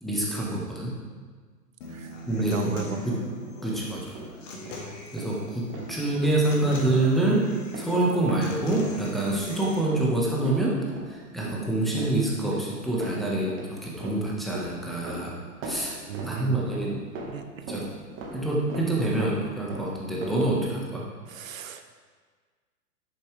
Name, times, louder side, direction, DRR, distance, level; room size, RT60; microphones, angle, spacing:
voice 1, 0.0-0.9 2.3-3.2 3.6-4.1 5.1-15.4 15.6-15.9 16.2-17.0 17.7-17.9 18.3-21.0, right 2 dB, ahead, -5 dB, 1.4 m, -26 dB
Human voice / Acoustic guitar, 1.8-9.8, left 1 dB, 50° left, 2.0 m, -39 dB
voice 2, 2.4-3.0 16.1-16.7 17.3-17.7 21.3-21.8, right 8 dB, 55° right, 8 dB, 1.0 m, -35 dB
sound 1, 3.7-4.4 4.7-4.9 5.2-5.4 5.7-6.4 6.7-6.9 7.2-7.4 7.7-7.9 8.2-8.5 8.8-9.0 9.3-9.6 9.9-11.2 11.4-11.7 11.9-12.7 13.0-13.7 14.0-15.3 15.6-16.9 17.1-18.4 18.7-18.9 19.2-19.4 19.7-20.5, right 2 dB, 25° right, 1.7 m, -38 dB
10.0 x 8.8 x 3.4 m, 1.5 s
figure-of-eight pair, 120°, 48 cm